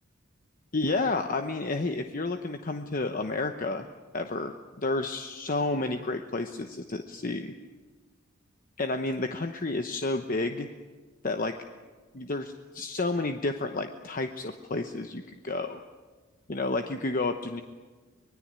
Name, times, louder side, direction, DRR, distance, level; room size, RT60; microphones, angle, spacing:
voice 1, 0.7-3.9 4.1-7.5 8.8-10.7 11.2-11.6 12.1-15.8 16.5-17.6, left 2 dB, 40° left, 7 dB, 1.0 m, -30 dB
24.5 x 20.5 x 8.9 m, 1.4 s
head